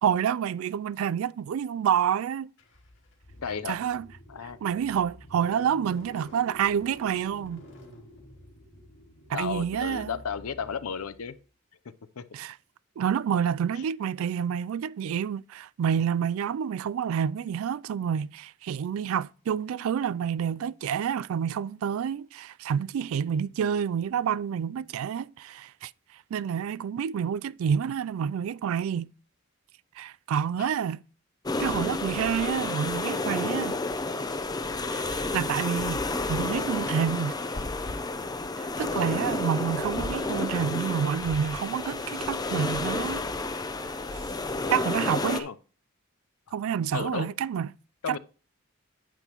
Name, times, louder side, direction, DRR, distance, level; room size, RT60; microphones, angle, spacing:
voice 1, 0.0-2.5 3.7-4.1 4.6-7.7 9.3-10.1 12.3-12.6 13.0-25.9 26.3-29.1 30.0-31.0 31.6-33.8 34.9-36.0 36.3-37.4 38.6-43.3 44.7-45.5 46.5-47.7 48.1-48.2, right 8 dB, 70° right, 0.3 m, -28 dB
Car / Engine starting, 2.6-11.3, left 1 dB, 60° left, 2.1 m, -49 dB
voice 2, 3.4-3.7 4.3-4.6 9.3-11.4 12.2-12.3 13.7-13.8 30.6-30.7 45.3-45.6 46.9-47.3 48.0-48.2, left 6 dB, 90° left, 0.6 m, -33 dB
sound 1, 31.4-45.4, left 3 dB, 20° left, 0.6 m, -31 dB
9.1 x 8.0 x 2.9 m
head